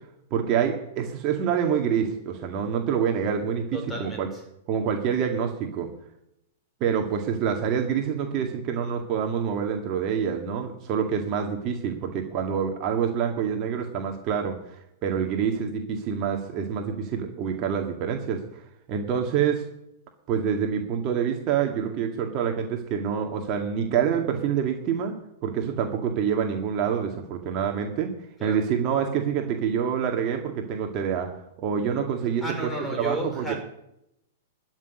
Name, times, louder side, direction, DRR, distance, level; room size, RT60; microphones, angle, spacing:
voice 1, 0.3-4.3 4.7-5.9 6.8-14.8 15.0-18.6 18.9-19.7 20.3-25.2 25.4-28.1 28.4-31.3 31.6-32.7 33.0-33.5, right 7 dB, 40° right, 3 dB, 2.0 m, -26 dB
voice 2, 3.7-4.4 17.4-17.6 26.0-26.1 28.4-28.6 32.4-33.6, right 1 dB, 5° left, 2 dB, 4.8 m, -33 dB
13.5 x 6.3 x 9.8 m, 0.81 s
hypercardioid pair, 125°, 0 cm